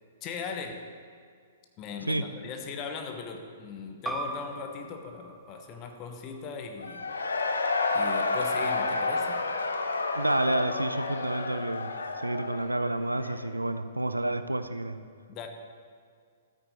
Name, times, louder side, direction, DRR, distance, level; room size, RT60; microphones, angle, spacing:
voice 1, 0.2-0.9 1.8-7.0 7.9-9.4 15.3-15.5, left 5 dB, 30° left, 5 dB, 1.0 m, -39 dB
sound 1, 4.0-9.2, right 2 dB, 5° right, 0.6 m, -42 dB
Cheering / Crowd, 6.8-13.5, left 3 dB, 70° left, 0.8 m, -30 dB
voice 2, 10.1-11.9 12.2-15.0, right 1 dB, 85° right, 10 dB, 0.5 m, -29 dB
13.0 x 9.2 x 4.0 m, 2.1 s
figure-of-eight pair, 115°, 0 cm